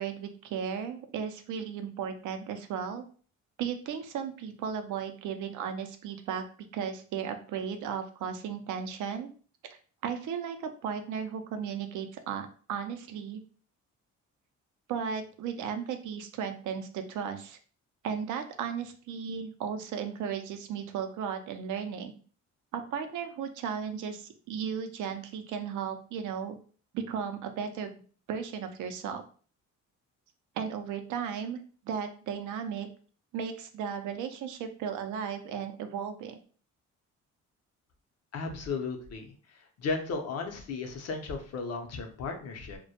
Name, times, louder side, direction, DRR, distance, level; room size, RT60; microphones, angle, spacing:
voice 1, 0.0-3.0 3.6-6.4 6.7-9.3 9.6-13.4 14.9-17.6 18.0-22.1 22.7-26.5 26.9-28.0 28.3-29.2 30.6-31.6 31.8-32.9 33.3-36.4, right 7 dB, 80° right, 7 dB, 0.5 m, -35 dB
voice 2, 38.3-39.3 39.8-42.8, left 4 dB, 55° left, 4 dB, 0.6 m, -35 dB
2.1 x 2.1 x 2.7 m, 0.41 s
cardioid pair, 90°, 30 cm